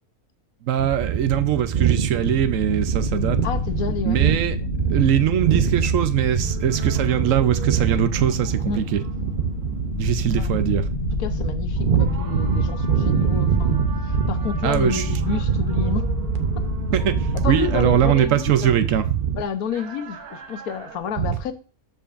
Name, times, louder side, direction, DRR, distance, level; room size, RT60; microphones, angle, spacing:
voice 1, 0.6-3.4 4.0-4.6 4.9-9.0 10.0-10.9 14.6-15.1 16.9-19.2 21.2-21.4, right 10 dB, 65° right, 1.1 m, -21 dB
sound 1, 0.8-19.4, right 7 dB, 40° right, 0.9 m, -25 dB
sound 2, 2.2-18.2, left 2 dB, 55° left, 1.8 m, -29 dB
voice 2, 3.4-4.2 8.7-8.8 10.3-10.7 11.2-16.1 16.6-16.7 17.4-18.7 19.4-21.5, left 7 dB, 80° left, 1.4 m, -30 dB
sound 3, 6.4-21.0, right 6 dB, 90° right, 1.5 m, -43 dB
13.5 x 5.2 x 2.5 m
omnidirectional pair, 1.5 m